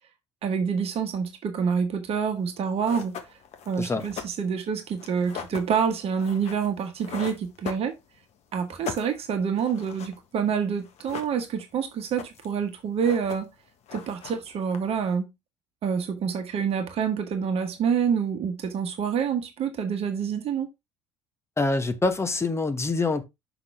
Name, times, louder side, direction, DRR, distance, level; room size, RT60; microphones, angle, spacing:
voice 1, 0.4-3.1 3.7-7.9 8.5-13.5 13.9-15.3 15.8-20.7, right 7 dB, 45° right, 1.3 m, -27 dB
sound 1, 2.5-2.6 2.8-8.3 8.6-10.2 10.5-10.6 10.8-11.7 12.0-12.6 12.9-13.6 13.9-15.1, left 7 dB, 50° left, 1.4 m, -39 dB
voice 2, 21.6-23.2, left 3 dB, 20° left, 1.3 m, -25 dB
6.1 x 6.0 x 3.5 m
figure-of-eight pair, 60°, 14 cm